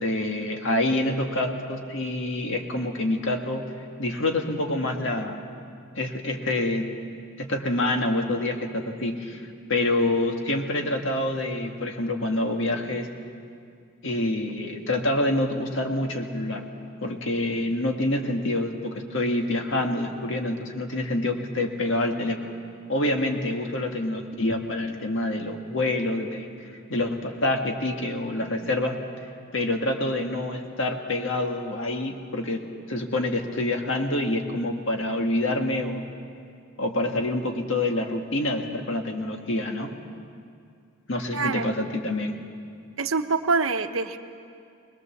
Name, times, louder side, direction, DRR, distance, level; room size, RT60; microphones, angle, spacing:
voice 1, 0.0-3.7 4.0-5.4 5.9-6.9 7.4-9.4 9.7-13.1 14.0-16.6 17.0-22.4 22.9-29.0 29.5-32.6 32.9-36.0 36.8-39.9 41.1-42.4, left 1 dB, 65° left, 3 dB, 1.7 m, -27 dB
voice 2, 41.3-41.7 43.0-44.2, right 4 dB, 75° right, 8 dB, 0.9 m, -25 dB
21.5 x 20.5 x 7.2 m, 2.4 s
head